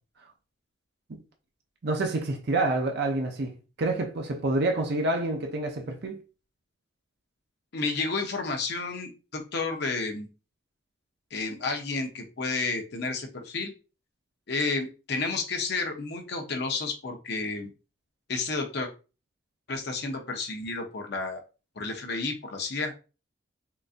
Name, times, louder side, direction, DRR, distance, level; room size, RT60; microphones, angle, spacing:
voice 1, 1.8-3.5 3.8-6.2, right 2 dB, 50° right, 0.5 m, -27 dB
voice 2, 7.7-10.3 11.3-13.7 14.5-17.7 18.3-18.9 19.7-21.4 21.8-22.9, left 3 dB, 50° left, 0.7 m, -31 dB
3.8 x 2.5 x 2.4 m
head